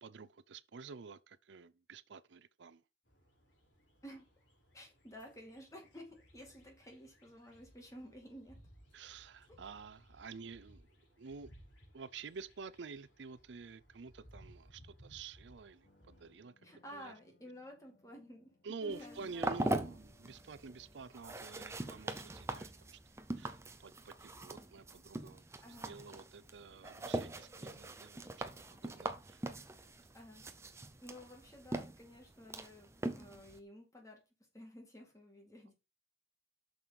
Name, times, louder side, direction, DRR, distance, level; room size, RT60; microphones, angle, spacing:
voice 1, 0.0-2.8 8.9-10.9 11.2-11.5 11.9-16.5 16.9-17.1 18.6-23.0 23.4-28.5 28.7-29.5 29.8-29.9, right 5 dB, 75° right, 0.5 m, -50 dB
sound 1, 3.0-16.3, equal, 80° left, 3.5 m, -62 dB
voice 2, 4.7-8.6 16.6-18.5 18.9-19.5 24.3-24.4 25.6-25.9 30.1-30.4 31.0-34.2 34.5-35.7, equal, 15° left, 2.3 m, -53 dB
sound 2, 15.8-24.9, left 2 dB, 65° left, 1.3 m, -62 dB
sound 3, 18.9-33.6, right 2 dB, 15° right, 0.6 m, -42 dB
6.3 x 5.8 x 5.2 m
head